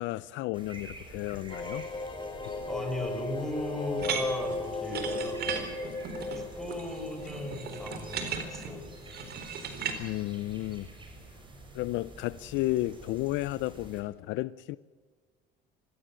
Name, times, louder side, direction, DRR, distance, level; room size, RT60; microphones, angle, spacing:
voice 1, 0.0-1.9 2.4-2.5 10.0-10.9 11.7-14.8, left 17 dB, 70° left, 0.6 m, -33 dB
sound 1, 0.5-14.0, right 2 dB, 25° right, 6.4 m, -49 dB
sound 2, 1.5-9.0 9.3-9.4 9.6-9.7, left 2 dB, 25° left, 3.2 m, -37 dB
voice 2, 2.7-5.4 6.3-8.8, left 1 dB, ahead, 6.4 m, -37 dB
sound 3, 4.0-10.0, right 6 dB, 50° right, 4.2 m, -36 dB
24.0 x 16.5 x 7.7 m
supercardioid pair, 100°, 20 cm